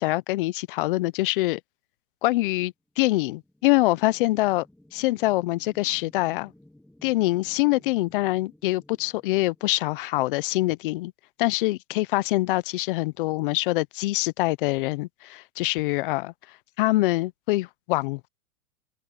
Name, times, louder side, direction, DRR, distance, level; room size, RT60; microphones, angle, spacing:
voice 1, 0.0-1.6 2.2-4.7 4.9-6.5 7.0-11.1 11.4-16.3 16.8-18.3, left 19 dB, 40° left, 0.4 m, -24 dB
sound 1, 2.9-10.6, left 1 dB, ahead, 2.1 m, -57 dB
open air
supercardioid pair, 145°, 45 cm